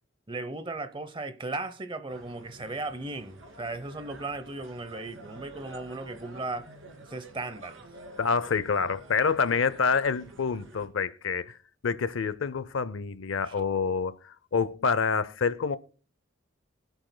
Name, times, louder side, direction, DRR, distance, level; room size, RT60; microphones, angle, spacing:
voice 1, 0.3-6.7 7.1-7.8 13.4-13.5, right 2 dB, 25° right, 0.7 m, -36 dB
sound 1, 2.1-10.9, right 2 dB, 75° right, 2.2 m, -49 dB
voice 2, 8.2-11.6 11.8-15.8, left 5 dB, 75° left, 0.6 m, -27 dB
24.0 x 8.1 x 2.2 m
head